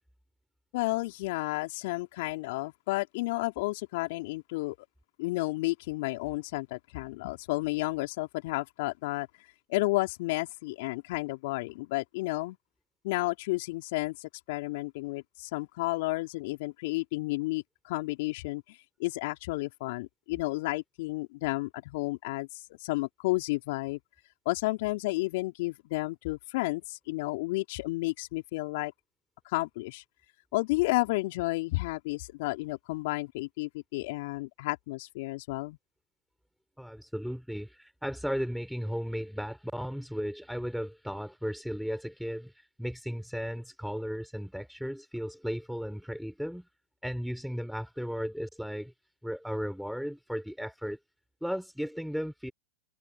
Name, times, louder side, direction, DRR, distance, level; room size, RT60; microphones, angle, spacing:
voice 1, 0.7-4.7 5.2-9.3 9.7-12.6 13.0-24.0 24.4-28.9 29.4-30.0 30.5-35.8, left 22 dB, 55° left, 3.2 m, -32 dB
voice 2, 36.8-46.7 47.0-48.9 49.2-51.0 51.4-52.5, equal, ahead, 7.0 m, -35 dB
hypercardioid pair, 100°, 0 cm